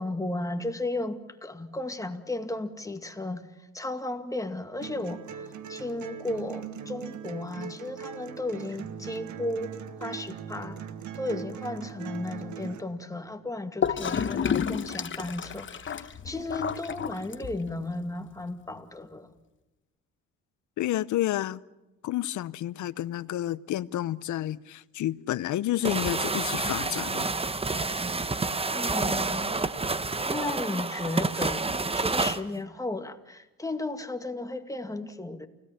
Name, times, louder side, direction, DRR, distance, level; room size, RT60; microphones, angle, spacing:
voice 1, 0.0-9.7 10.0-10.8 11.1-19.3 28.7-29.5 30.3-35.5, left 2 dB, 10° left, 2.2 m, -34 dB
sound 1, 4.8-12.8, right 8 dB, 75° right, 1.8 m, -40 dB
Gurgling / Toilet flush, 13.8-17.8, left 7 dB, 40° left, 1.2 m, -30 dB
voice 2, 20.8-21.6 22.0-27.3, left 13 dB, 75° left, 0.8 m, -30 dB
sound 2, 25.8-32.4, right 3 dB, 20° right, 1.1 m, -29 dB
29.0 x 17.5 x 7.4 m
cardioid pair, 90°, 30 cm